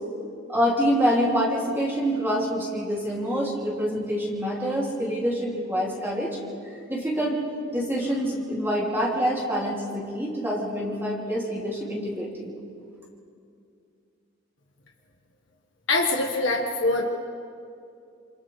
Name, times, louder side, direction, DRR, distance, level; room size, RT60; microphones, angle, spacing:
voice 1, 0.5-6.4 6.9-7.4 7.7-12.5, equal, 10° right, -5 dB, 2.8 m, -26 dB
voice 2, 15.9-17.0, left 2 dB, 70° left, 1 dB, 1.6 m, -23 dB
28.5 x 27.5 x 3.4 m, 2.4 s
head